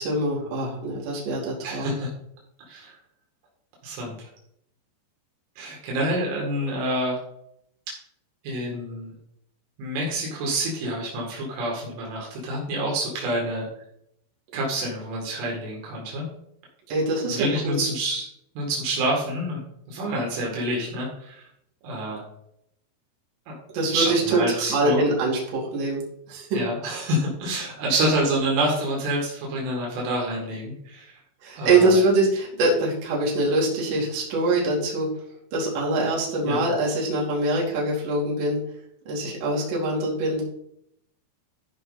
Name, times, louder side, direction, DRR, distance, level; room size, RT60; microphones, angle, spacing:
voice 1, 0.0-1.9 16.9-17.8 23.7-26.0 26.3-26.6 31.4-35.1 35.5-38.6 39.1-40.4, right 2 dB, 65° right, -4 dB, 4.6 m, -24 dB
voice 2, 1.6-2.1 2.7-3.0 3.8-4.3 5.6-7.2 7.9-8.0 8.4-9.1 9.8-13.7 14.5-16.3 17.3-18.3 18.6-19.6 19.9-21.5 21.8-22.2 23.5-23.6 23.9-25.0 26.5-31.2 31.6-32.0 36.4-36.6, right 1 dB, 80° right, -2 dB, 4.6 m, -27 dB
14.0 x 5.3 x 4.1 m, 0.75 s
omnidirectional pair, 5.5 m